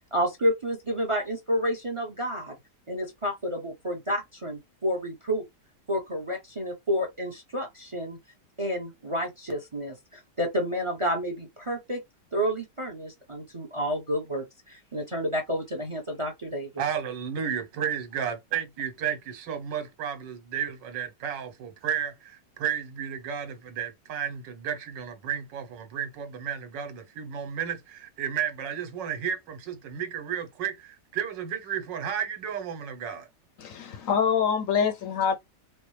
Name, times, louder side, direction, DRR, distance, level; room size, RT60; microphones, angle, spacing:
voice 1, 0.1-2.5 2.9-5.4 5.9-8.2 8.6-12.0 12.3-16.8, equal, 40° right, 0.4 m, -30 dB
voice 2, 16.8-33.3, right 8 dB, 85° right, 1.6 m, -33 dB
voice 3, 33.6-35.4, left 7 dB, 70° left, 0.8 m, -25 dB
4.3 x 2.0 x 3.1 m
omnidirectional pair, 1.9 m